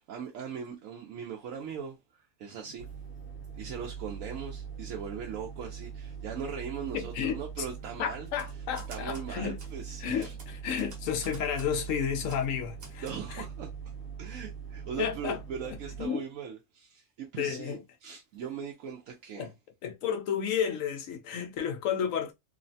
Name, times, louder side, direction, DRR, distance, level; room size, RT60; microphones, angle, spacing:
voice 1, 0.1-2.9 3.6-8.3 8.9-10.3 13.0-19.5 22.0-22.1, right 7 dB, 85° right, 1.0 m, -40 dB
sound 1, 2.8-16.1, right 7 dB, 45° left, 1.1 m, -42 dB
voice 2, 6.9-7.4 8.0-9.6 10.0-13.4 15.0-15.4 16.0-16.2 17.4-17.8 19.4-19.5 19.8-22.3, left 8 dB, 85° left, 1.0 m, -32 dB
Typewriter, 8.3-9.3 9.6-9.7 10.2-11.9 12.3-12.5 12.8-13.2, right 3 dB, 55° right, 1.0 m, -50 dB
3.1 x 2.1 x 2.6 m
omnidirectional pair, 1.3 m